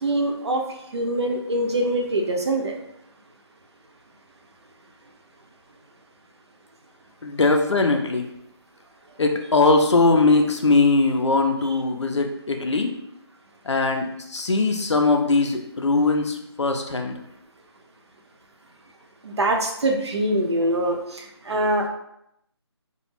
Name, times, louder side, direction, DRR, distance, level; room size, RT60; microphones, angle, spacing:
voice 1, 0.0-0.6 0.9-2.8 19.2-21.9, right 1 dB, 70° right, 2 dB, 0.5 m, -24 dB
voice 2, 7.2-8.3 9.2-12.9 13.7-17.2, left 3 dB, 80° left, 4 dB, 0.5 m, -20 dB
2.2 x 2.0 x 3.1 m, 0.79 s
figure-of-eight pair, 155°, 15 cm